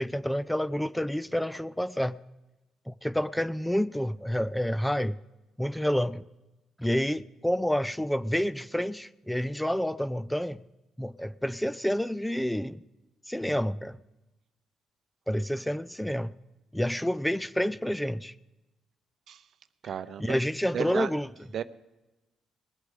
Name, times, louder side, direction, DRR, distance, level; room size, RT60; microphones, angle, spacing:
voice 1, 0.0-2.2 2.9-5.2 5.6-6.3 6.8-10.6 11.0-12.8 13.3-14.0 15.3-16.3 16.7-18.3 20.2-21.3, equal, 5° left, 0.4 m, -29 dB
voice 2, 19.8-20.4 20.7-21.1 21.5-21.6, right 8 dB, 65° right, 0.6 m, -33 dB
20.5 x 8.1 x 4.9 m
cardioid pair, 90°, 0 cm